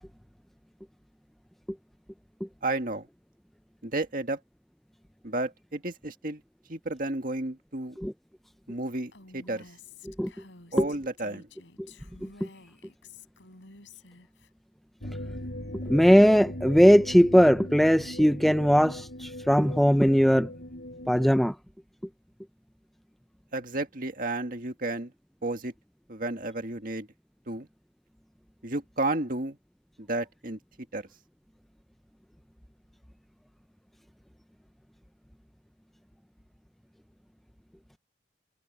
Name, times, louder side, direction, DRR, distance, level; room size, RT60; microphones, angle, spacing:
voice 1, 2.6-3.1 3.8-4.4 5.2-6.4 6.7-8.0 8.7-9.6 10.7-11.5 23.5-25.1 25.4-25.7 26.1-27.1 27.5-27.7 28.6-29.6 30.0-30.6 30.9-31.0, right 2 dB, 45° right, 1.9 m, -32 dB
Female speech woman speaking, 9.1-14.5, left 4 dB, 80° left, 4.1 m, -51 dB
sound 1, 15.0-21.3, left 1 dB, 65° left, 5.1 m, -39 dB
voice 2, 15.9-20.5 21.1-21.5, equal, ahead, 0.4 m, -20 dB
head